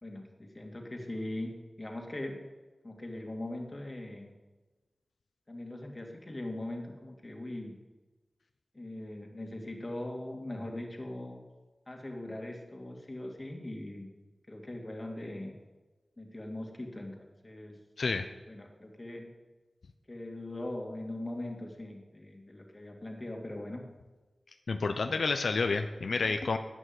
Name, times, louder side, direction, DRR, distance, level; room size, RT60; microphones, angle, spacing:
voice 1, 0.0-2.4 2.8-4.3 5.5-7.7 8.7-11.4 11.9-14.1 14.5-15.6 16.2-17.8 18.5-19.3 20.1-23.9 26.3-26.4, left 1 dB, 30° left, 1 dB, 2.3 m, -40 dB
voice 2, 24.7-26.6, left 4 dB, 90° left, 7 dB, 0.6 m, -29 dB
11.5 x 9.1 x 7.9 m, 1.2 s
wide cardioid pair, 80°, 0 cm